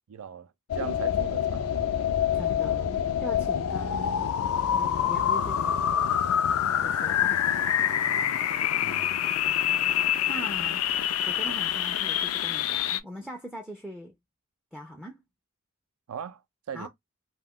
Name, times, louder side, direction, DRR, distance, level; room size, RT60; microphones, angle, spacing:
voice 1, 0.1-1.9 8.8-9.3 16.1-16.4 16.7-16.9, right 7 dB, 85° right, 0.4 m, -39 dB
sound 1, 0.7-13.0, left 9 dB, 85° left, 0.4 m, -26 dB
voice 2, 2.3-4.3 4.7-5.9 6.8-8.0 9.4-9.8 10.3-10.8 11.2-14.1 14.7-15.2 16.7-16.9, equal, 5° right, 0.3 m, -41 dB
2.4 x 2.2 x 3.5 m
head